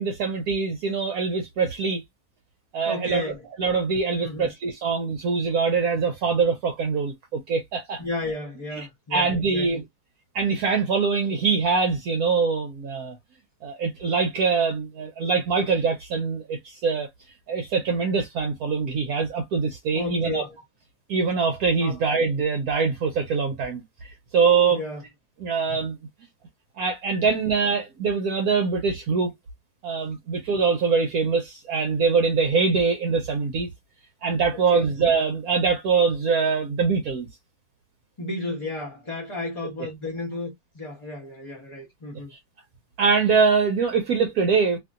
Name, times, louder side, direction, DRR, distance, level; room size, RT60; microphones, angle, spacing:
voice 1, 0.0-2.0 2.7-3.3 3.6-8.0 8.8-8.9 9.1-9.8 10.3-13.2 13.6-17.1 17.5-20.4 21.1-24.8 25.4-26.0 26.8-29.3 29.8-33.7 34.2-37.3 43.0-44.8, right 5 dB, 65° right, 1.1 m, -23 dB
voice 2, 2.9-3.4 4.2-4.5 8.0-9.8 19.9-20.6 21.8-22.0 24.7-25.0 27.2-27.3 34.7-34.9 38.2-42.3, left 2 dB, 30° left, 0.6 m, -33 dB
2.8 x 2.7 x 2.4 m
omnidirectional pair, 1.8 m